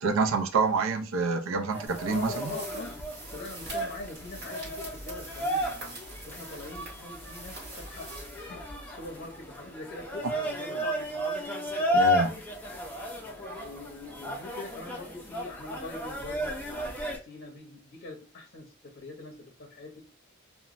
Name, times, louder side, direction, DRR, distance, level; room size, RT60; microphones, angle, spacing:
voice 1, 0.0-2.5 11.9-12.4, right 4 dB, 80° right, 6 dB, 0.4 m, -27 dB
sound 1, 1.7-17.2, equal, 10° left, 0.5 m, -33 dB
sound 2, 1.9-9.0, right 1 dB, 55° right, 1.3 m, -44 dB
voice 2, 2.1-3.0 3.3-6.0 6.3-10.9 12.7-13.0 13.3-20.0, left 2 dB, 50° left, 0 dB, 0.6 m, -43 dB
2.9 x 2.1 x 2.4 m, 0.36 s
head